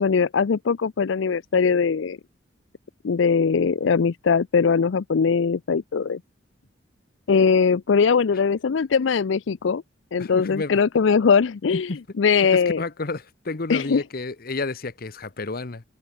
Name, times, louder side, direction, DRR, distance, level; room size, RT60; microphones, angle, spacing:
voice 1, 0.0-2.2 3.0-6.2 7.3-9.8 10.1-11.9 12.2-12.8 13.7-14.0, left 5 dB, 75° left, 0.5 m, -21 dB
voice 2, 10.2-10.8 11.7-12.0 12.5-15.8, left 3 dB, 50° left, 1.0 m, -31 dB
head